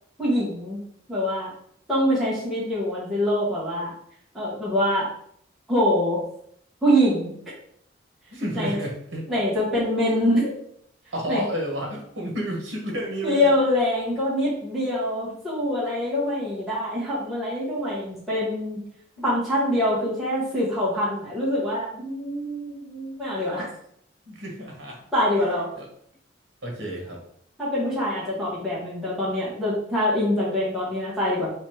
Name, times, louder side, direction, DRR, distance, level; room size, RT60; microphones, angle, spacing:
voice 1, 0.2-0.8 1.1-1.5 1.9-3.9 4.3-5.1 5.7-6.2 6.8-7.3 8.5-8.8 9.3-10.5 11.3-11.4 13.2-18.8 19.2-23.7 25.1-25.7 27.6-31.5, equal, ahead, -10 dB, 1.2 m, -24 dB
voice 2, 8.3-9.3 11.1-13.5 15.7-15.8 19.2-19.3 24.3-25.0 25.4-25.5 25.7-25.9 26.6-27.2, equal, 70° right, 0 dB, 1.1 m, -31 dB
3.3 x 3.0 x 3.2 m, 0.67 s
head